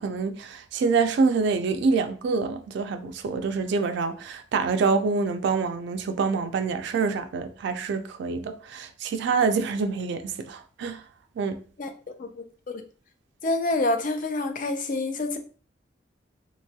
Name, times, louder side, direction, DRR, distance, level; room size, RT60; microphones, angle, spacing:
voice 1, 0.0-11.0 11.4-11.6, right 4 dB, 65° right, 0.3 m, -26 dB
voice 2, 11.8-12.8 13.4-15.4, left 2 dB, 45° left, 0.4 m, -28 dB
2.9 x 2.2 x 2.7 m
head